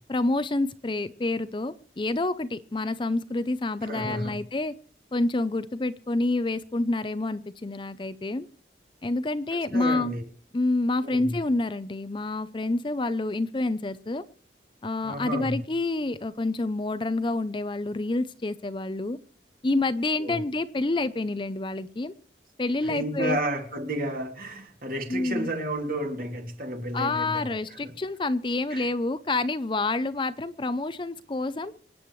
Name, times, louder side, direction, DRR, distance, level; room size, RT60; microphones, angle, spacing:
voice 1, 0.1-4.7 5.1-8.5 9.0-10.1 10.5-14.2 14.8-19.2 19.6-22.1 22.6-23.4 25.1-25.5 26.9-31.7, left 2 dB, 25° left, 0.5 m, -28 dB
voice 2, 3.8-4.4 9.7-10.2 11.0-11.4 15.0-15.6 20.2-20.4 22.8-27.9 28.7-28.9, right 1 dB, 50° right, 2.6 m, -32 dB
26.5 x 9.3 x 3.1 m
head